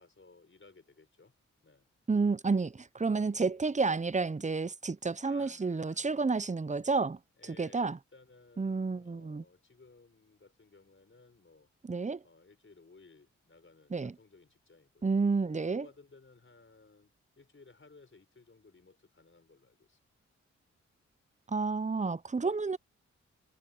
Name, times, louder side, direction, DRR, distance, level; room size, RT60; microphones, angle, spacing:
voice 1, 0.0-1.3 1.6-1.9 5.2-6.5 7.4-11.7 12.2-15.2 15.6-20.0, left 3 dB, 40° left, 5.5 m, -59 dB
voice 2, 2.1-7.2 7.6-8.0 8.6-9.4 11.8-12.2 13.9-14.1 15.0-15.9 21.5-22.8, right 4 dB, 25° right, 0.8 m, -30 dB
supercardioid pair, 40°, 30 cm